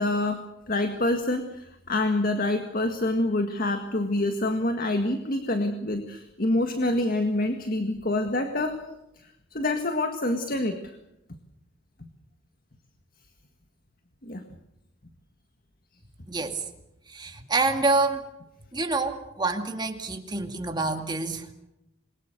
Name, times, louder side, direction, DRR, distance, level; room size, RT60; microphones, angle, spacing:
voice 1, 0.0-8.8 9.5-10.9 14.2-14.4, left 2 dB, 45° left, 6 dB, 1.8 m, -26 dB
voice 2, 16.3-16.6 17.1-18.2 18.7-21.5, right 3 dB, 20° right, 5 dB, 2.3 m, -27 dB
27.0 x 22.5 x 6.7 m, 0.88 s
head